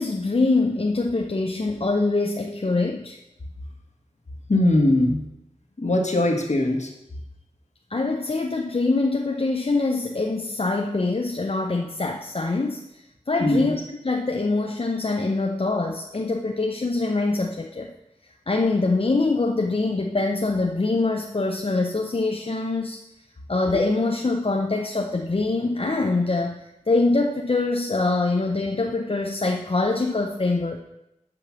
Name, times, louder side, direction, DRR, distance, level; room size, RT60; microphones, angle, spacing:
voice 1, 0.0-3.2 7.9-17.9 18.5-23.0 23.5-30.8, left 3 dB, 45° left, 2 dB, 0.7 m, -24 dB
voice 2, 4.5-5.2 5.8-6.9 13.4-13.7, left 1 dB, 65° left, 1 dB, 1.6 m, -20 dB
8.4 x 5.4 x 5.8 m, 0.86 s
wide cardioid pair, 55°, 13 cm